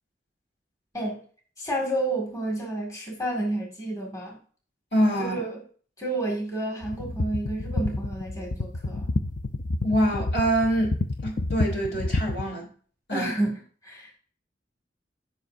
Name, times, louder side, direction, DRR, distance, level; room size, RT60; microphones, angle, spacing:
voice 1, 0.9-1.3 1.6-4.4 5.2-5.6 6.0-9.1 13.1-14.2, right 1 dB, 20° left, 2.0 m, -30 dB
voice 2, 4.9-5.4 9.8-10.9 11.2-12.7 13.1-13.3, equal, 70° left, 3.3 m, -25 dB
sound 1, 6.8-12.5, left 2 dB, 50° left, 0.5 m, -29 dB
14.5 x 5.7 x 2.6 m
head